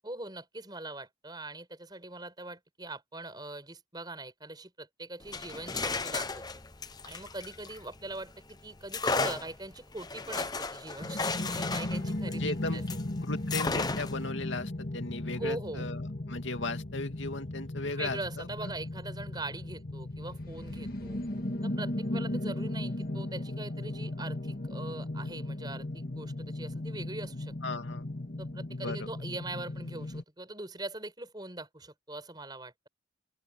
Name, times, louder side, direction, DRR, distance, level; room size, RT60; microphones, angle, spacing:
voice 1, 0.0-6.4 7.0-12.8 15.3-15.9 17.9-21.2 21.6-27.5 28.4-32.9, right 2 dB, 20° right, 5.3 m, -42 dB
sound 1, 5.2-8.3 8.9-13.1 13.5-14.3, left 4 dB, 20° left, 0.8 m, -34 dB
sound 2, 11.0-30.2, left 1 dB, 50° left, 1.9 m, -36 dB
voice 2, 12.3-12.8 13.2-18.7 27.6-28.1 28.7-29.1, left 2 dB, 75° left, 2.4 m, -36 dB
open air
head